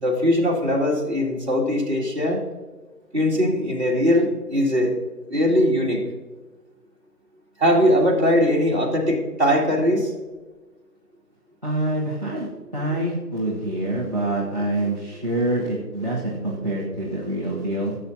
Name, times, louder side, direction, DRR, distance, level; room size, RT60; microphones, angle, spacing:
voice 1, 0.0-2.4 3.1-4.9 5.3-6.0 7.6-10.1 12.9-13.0, equal, 45° right, -3 dB, 2.4 m, -20 dB
voice 2, 11.6-12.5 12.7-18.0, right 1 dB, 25° right, -6 dB, 1.1 m, -26 dB
14.5 x 7.1 x 2.7 m, 1.2 s
figure-of-eight pair, 175°, 48 cm